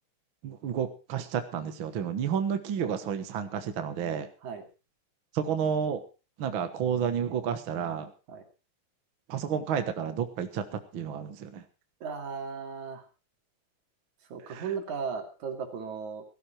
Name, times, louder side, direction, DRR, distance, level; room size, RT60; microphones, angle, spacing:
voice 1, 0.4-4.3 5.3-6.0 6.4-8.1 9.3-11.6 14.5-14.6, right 7 dB, 50° right, 8 dB, 1.9 m, -31 dB
voice 2, 12.0-13.0 14.3-16.2, right 6 dB, 80° right, 5 dB, 4.0 m, -36 dB
16.5 x 14.5 x 4.4 m, 0.32 s
omnidirectional pair, 3.3 m